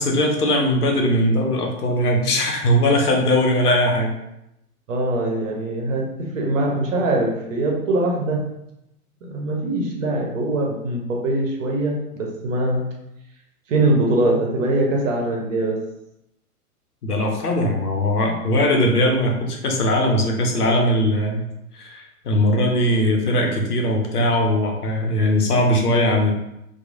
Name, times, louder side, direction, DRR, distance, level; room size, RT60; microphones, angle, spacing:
voice 1, 0.0-4.1 17.0-21.5 21.7-26.3, left 1 dB, 75° left, 1 dB, 0.8 m, -20 dB
voice 2, 4.9-8.5 9.2-12.8 13.7-15.8, right 2 dB, 55° right, -1 dB, 0.9 m, -22 dB
3.0 x 2.3 x 2.5 m, 0.85 s
figure-of-eight pair, 110°, 46 cm